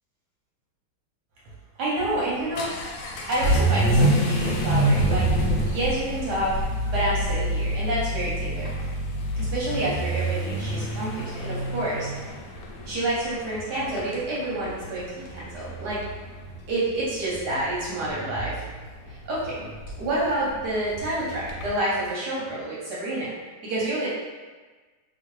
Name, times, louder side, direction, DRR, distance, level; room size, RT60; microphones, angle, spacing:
voice 1, 1.8-2.7 3.3-5.3 5.6-8.7 9.4-12.1 12.8-16.0 16.7-18.6 19.1-19.6 20.0-23.3 23.6-24.1, right 1 dB, 65° right, -7 dB, 1.1 m, -28 dB
Vehicle / Accelerating revving vroom, 2.0-21.8, right 1 dB, 75° left, 1.3 m, -27 dB
3.0 x 2.7 x 3.0 m, 1.3 s
omnidirectional pair, 2.3 m